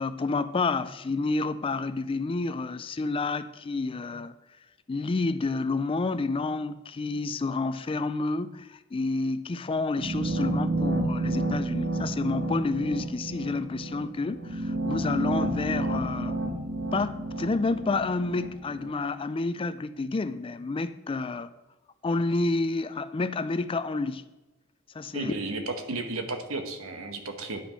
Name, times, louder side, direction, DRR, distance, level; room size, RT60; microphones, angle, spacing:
voice 1, 0.0-4.3 4.9-16.4 16.9-21.5 22.0-24.2 24.9-25.3, left 3 dB, 25° left, 0.4 m, -29 dB
sound 1, 10.0-18.9, right 2 dB, 55° right, 1.2 m, -30 dB
voice 2, 25.1-27.6, right 2 dB, 90° right, 1.2 m, -33 dB
9.9 x 5.9 x 5.6 m
head